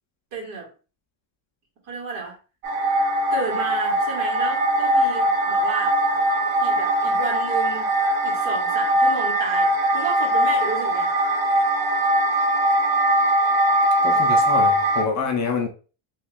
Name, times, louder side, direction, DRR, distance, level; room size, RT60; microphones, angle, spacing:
voice 1, 0.3-0.7 1.9-2.4 3.3-6.0 6.6-7.9 8.2-11.1, right 4 dB, 65° right, -2 dB, 1.9 m, -32 dB
sound 1, 2.6-15.0, right 1 dB, 90° right, 1.0 m, -21 dB
voice 2, 14.0-15.7, left 5 dB, 40° left, 3 dB, 0.5 m, -26 dB
3.0 x 2.5 x 3.4 m, 0.35 s
cardioid pair, 150°, 48 cm